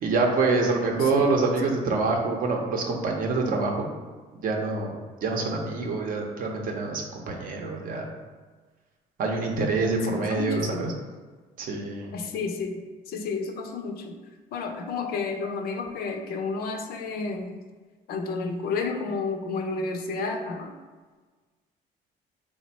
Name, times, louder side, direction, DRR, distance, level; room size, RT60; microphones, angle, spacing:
voice 1, 0.0-3.9 4.3-4.9 5.2-8.0 9.2-10.9 11.6-12.1, right 3 dB, 55° right, 1 dB, 0.6 m, -26 dB
voice 2, 10.2-10.9 12.1-12.8 13.1-14.2 14.5-17.6 18.1-20.7, left 4 dB, 65° left, 5 dB, 0.5 m, -31 dB
3.3 x 2.1 x 4.1 m, 1.4 s
cardioid pair, 110°, 17 cm